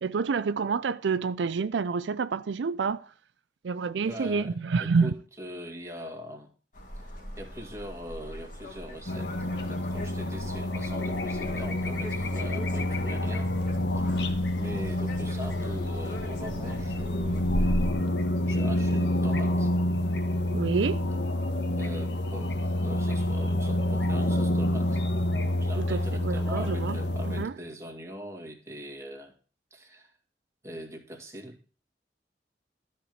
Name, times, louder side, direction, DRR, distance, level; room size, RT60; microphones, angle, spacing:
voice 1, 0.0-3.1 3.6-5.1 20.5-21.0 25.8-27.0 27.2-27.6, right 5 dB, 85° right, 0.4 m, -28 dB
voice 2, 3.9-4.5 4.8-6.5 7.1-13.5 14.0-14.3 14.6-17.5 18.5-19.7 21.7-25.0 25.6-29.3 29.7-30.1 30.6-31.6, equal, 15° right, 2.2 m, -42 dB
sound 1, 6.7-17.9, equal, 50° left, 2.7 m, -38 dB
sound 2, 9.1-27.5, left 1 dB, 75° left, 1.3 m, -28 dB
13.0 x 4.6 x 7.9 m
head